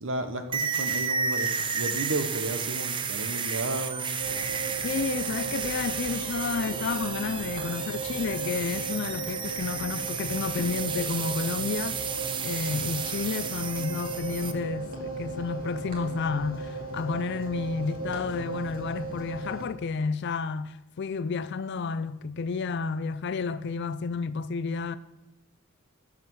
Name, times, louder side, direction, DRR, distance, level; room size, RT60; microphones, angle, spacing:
voice 1, 0.0-4.2, right 2 dB, 60° right, 1.0 m, -33 dB
sound 1, 0.5-14.5, right 6 dB, 25° right, 0.4 m, -32 dB
sound 2, 4.2-19.6, right 3 dB, 40° right, 2.3 m, -37 dB
voice 2, 4.8-12.0 12.4-25.0, left 5 dB, 55° left, 0.4 m, -31 dB
11.5 x 4.9 x 6.2 m
head